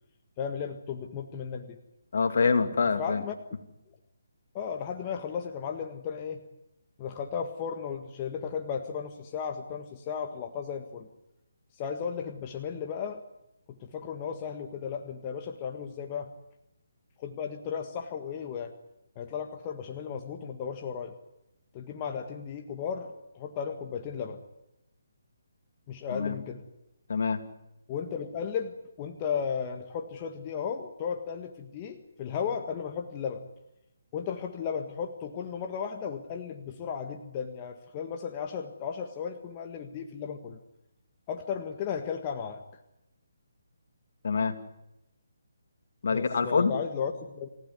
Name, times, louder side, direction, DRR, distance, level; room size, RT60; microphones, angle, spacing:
voice 1, 0.4-1.8 3.0-3.3 4.5-6.4 7.0-11.1 11.8-13.2 13.7-16.3 17.2-18.7 19.1-21.1 21.7-24.4 25.9-26.6 27.9-33.4 34.1-40.6 41.3-42.6 46.1-47.5, left 7 dB, 25° left, 4 dB, 1.6 m, -35 dB
voice 2, 2.1-3.2 26.1-26.3 27.1-27.4 44.2-44.5 46.0-46.7, left 5 dB, 60° left, 7 dB, 2.9 m, -25 dB
28.0 x 15.5 x 9.5 m, 0.90 s
hypercardioid pair, 160°, 0 cm